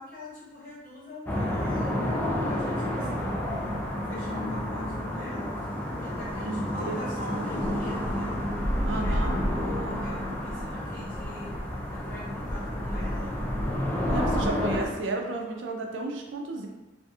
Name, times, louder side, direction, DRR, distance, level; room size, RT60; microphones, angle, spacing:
voice 1, 0.0-3.6 4.0-5.5 6.0-8.3 8.9-9.2 9.5-11.5 11.9-13.3, left 1 dB, 50° left, -9 dB, 1.5 m, -43 dB
sound 1, 1.3-14.9, left 1 dB, 10° left, 0.3 m, -30 dB
voice 2, 2.9-4.0 6.4-6.6 6.9-7.0 7.3-7.5 8.9-9.3 14.1-16.7, right 2 dB, 85° right, 1 dB, 0.4 m, -33 dB
2.7 x 2.4 x 2.3 m, 1.1 s
head